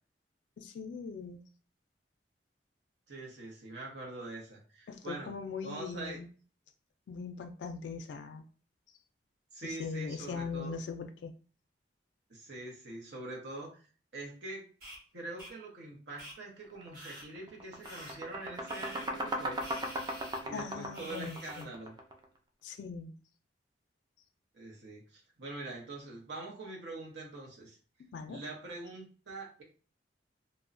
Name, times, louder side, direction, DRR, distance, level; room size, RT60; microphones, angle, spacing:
voice 1, 0.6-1.4 4.9-6.3 7.1-8.4 9.6-11.3 20.5-21.7 22.6-23.1 28.1-28.4, left 5 dB, 80° left, 6 dB, 0.3 m, -40 dB
voice 2, 3.1-5.3 5.6-6.2 9.5-10.7 12.3-13.7 14.1-14.6 15.1-19.6 20.4-22.0 24.5-27.8 28.3-29.6, right 2 dB, 75° right, -2 dB, 0.8 m, -44 dB
sound 1, 14.8-15.0 15.4-15.5 16.2-16.3 16.9-17.2 17.8-18.1 18.7-19.1 19.6-20.4 20.9-21.6, equal, 60° right, 1.1 m, -48 dB
sound 2, 16.7-16.9 17.3-22.2, equal, 25° right, 0.4 m, -37 dB
2.9 x 2.0 x 2.4 m, 0.38 s
head